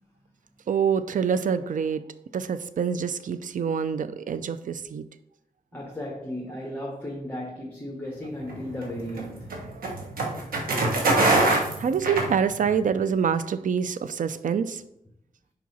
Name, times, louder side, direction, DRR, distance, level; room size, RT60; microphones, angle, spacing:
voice 1, 0.7-2.0 2.3-5.0 9.8-9.9 11.8-14.8, right 7 dB, 65° right, 0.4 m, -26 dB
voice 2, 5.7-9.5, left 1 dB, 10° left, 1.4 m, -35 dB
sound 1, 8.4-12.9, right 2 dB, 90° right, 1.2 m, -24 dB
5.1 x 4.7 x 4.2 m
cardioid pair, 60°, 15 cm